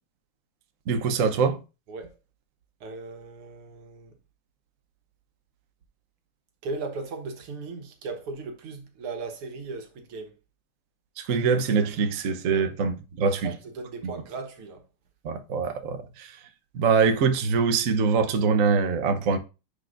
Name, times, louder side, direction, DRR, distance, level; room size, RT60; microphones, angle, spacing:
voice 1, 0.9-1.6 11.2-13.5 14.0-14.1 15.2-16.3 16.7-19.4, right 5 dB, 55° right, 0.9 m, -24 dB
voice 2, 2.8-4.1 6.6-10.3 12.5-12.7 13.4-14.8, right 3 dB, 85° right, 2.2 m, -37 dB
9.9 x 5.1 x 2.5 m
omnidirectional pair, 2.4 m